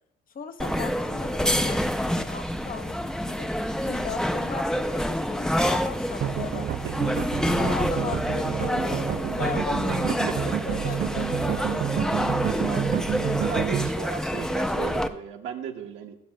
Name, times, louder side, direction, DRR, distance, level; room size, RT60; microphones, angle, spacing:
voice 1, 0.3-3.5 3.8-7.0 7.4-12.3, left 6 dB, 45° left, 8 dB, 0.8 m, -37 dB
sound 1, 0.6-15.1, equal, 5° left, 0.5 m, -27 dB
sound 2, 6.2-13.9, right 11 dB, 55° right, 0.4 m, -29 dB
voice 2, 12.6-16.2, right 9 dB, 85° right, 4 dB, 1.1 m, -36 dB
18.0 x 7.3 x 2.2 m, 0.78 s
cardioid pair, 90°, 20 cm